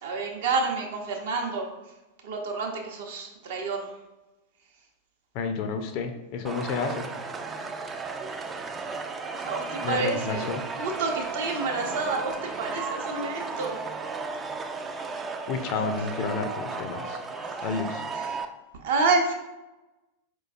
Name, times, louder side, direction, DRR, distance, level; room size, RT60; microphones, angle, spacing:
voice 1, 0.0-1.7 2.2-3.9 9.4-10.5 10.8-13.8 17.6-17.7 18.1-18.3 18.8-19.3, right 3 dB, 55° right, 2 dB, 0.7 m, -29 dB
voice 2, 5.3-7.1 9.8-10.6 15.5-17.2 17.6-18.0, left 5 dB, 45° left, 7 dB, 0.5 m, -30 dB
sound 1, 6.5-18.5, right 4 dB, 20° right, 0.3 m, -34 dB
4.7 x 3.0 x 2.4 m, 1.0 s
figure-of-eight pair, 90°, 0 cm